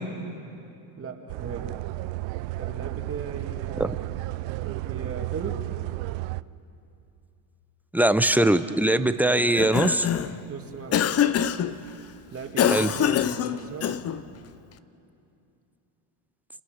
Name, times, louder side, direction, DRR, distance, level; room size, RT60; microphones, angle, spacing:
voice 1, 1.0-1.7 2.6-5.7 10.5-11.1 12.3-14.0, right 5 dB, 30° right, 2 dB, 2.2 m, -38 dB
sound 1, 1.3-6.4, right 19 dB, 65° right, 0.6 m, -33 dB
voice 2, 7.9-10.1 12.7-12.9, right 1 dB, 5° right, 11 dB, 0.6 m, -21 dB
Cough, 9.4-10.4 10.9-11.7 12.6-14.2, left 9 dB, 30° left, 0.7 m, -24 dB
29.0 x 27.5 x 6.5 m, 2.7 s
cardioid pair, 130°, 47 cm